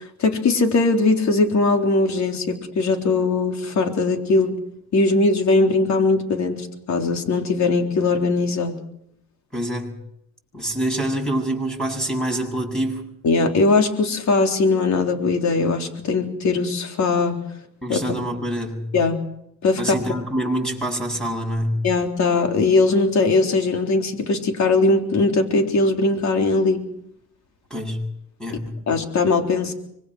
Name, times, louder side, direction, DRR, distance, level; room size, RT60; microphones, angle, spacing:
voice 1, 0.2-4.5 4.9-8.8 13.2-17.4 17.9-18.0 18.9-19.2 19.6-20.0 21.8-26.8 28.5-28.6 28.9-29.7, left 3 dB, 65° left, 4 dB, 3.7 m, -20 dB
voice 2, 9.5-9.9 10.5-13.1 17.8-18.9 19.8-21.8 27.7-28.0 28.4-28.8, right 1 dB, ahead, 1 dB, 7.8 m, -26 dB
25.5 x 21.5 x 6.2 m, 0.74 s
cardioid pair, 90°, 30 cm